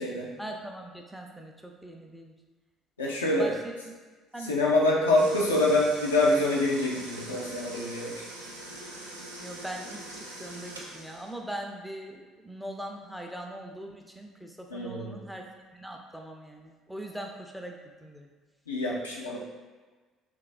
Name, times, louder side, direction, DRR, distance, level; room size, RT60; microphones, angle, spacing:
voice 1, 0.4-2.3 3.4-3.6 3.8-3.9 4.3-4.6 9.4-15.5 15.7-18.3, right 1 dB, ahead, 2 dB, 0.4 m, -41 dB
voice 2, 3.0-3.5 4.4-8.1 14.7-15.2 18.7-19.4, left 2 dB, 85° left, -3 dB, 0.4 m, -25 dB
sound 1, 5.2-11.4, right 1 dB, 90° right, 0.3 m, -42 dB
3.2 x 2.3 x 2.4 m, 1.3 s
figure-of-eight pair, 55°, 0 cm